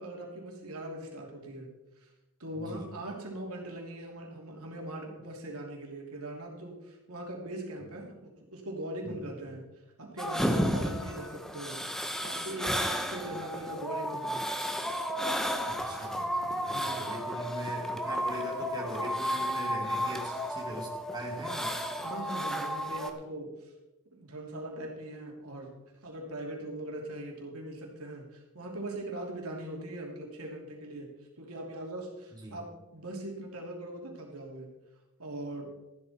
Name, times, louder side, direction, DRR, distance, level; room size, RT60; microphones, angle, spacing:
voice 1, 0.0-1.7 2.0-2.1 2.4-9.7 10.0-11.8 12.2-14.4 16.6-17.0 22.0-23.7 24.1-31.1 31.4-32.7 32.9-34.7 35.2-35.7, right 1 dB, 75° right, 0 dB, 3.1 m, -41 dB
voice 2, 2.6-2.9 7.8-7.9 9.0-9.2 13.1-13.2 15.6-21.8 32.3-32.6, right 1 dB, 20° right, -3 dB, 2.8 m, -41 dB
sound 1, 10.2-23.1, equal, ahead, 1.1 m, -33 dB
14.0 x 12.0 x 4.4 m, 0.99 s
head